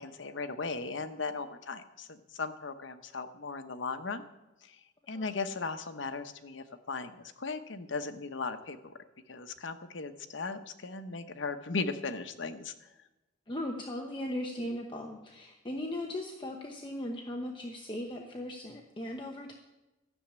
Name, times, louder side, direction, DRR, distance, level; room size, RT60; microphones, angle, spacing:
voice 1, 0.0-4.2 4.6-8.9 9.3-12.9, left 4 dB, 80° left, 9 dB, 1.0 m, -37 dB
voice 2, 13.5-19.5, left 1 dB, 25° left, 2 dB, 1.0 m, -38 dB
14.0 x 7.1 x 8.8 m, 1.0 s
head